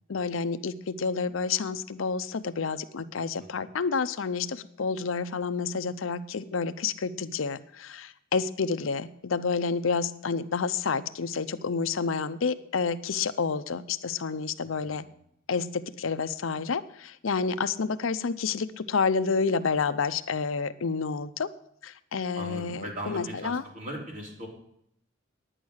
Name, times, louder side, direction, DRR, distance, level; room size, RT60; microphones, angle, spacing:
voice 1, 0.1-15.1 15.5-21.5 21.8-23.6, left 5 dB, 80° left, 12 dB, 0.6 m, -29 dB
voice 2, 14.6-15.1 22.4-24.5, right 1 dB, 45° right, -1 dB, 3.6 m, -39 dB
10.0 x 9.6 x 6.4 m, 0.74 s
head